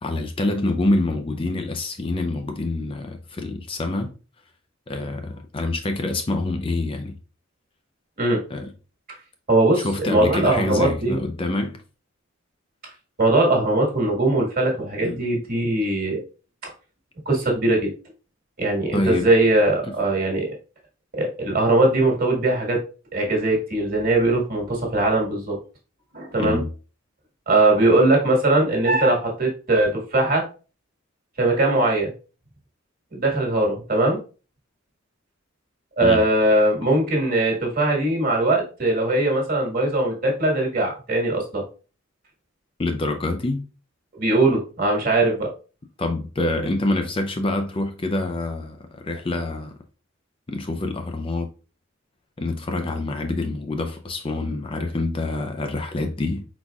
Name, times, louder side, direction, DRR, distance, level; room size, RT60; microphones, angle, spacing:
voice 1, 0.0-4.1 4.9-7.2 8.5-8.7 9.7-11.8 15.0-15.2 18.9-19.3 19.8-19.9 26.4-26.7 36.0-36.2 42.8-43.6 46.0-49.7 50.5-51.5 52.4-56.5, left 2 dB, 25° left, 0.5 m, -26 dB
voice 2, 9.5-11.2 13.2-16.2 17.2-17.9 18.6-20.5 21.1-22.8 23.1-25.6 26.1-26.6 27.5-30.4 31.4-32.1 33.1-34.2 36.0-41.6 44.1-45.5, right 2 dB, 45° right, 1.6 m, -20 dB
4.5 x 4.1 x 2.3 m
head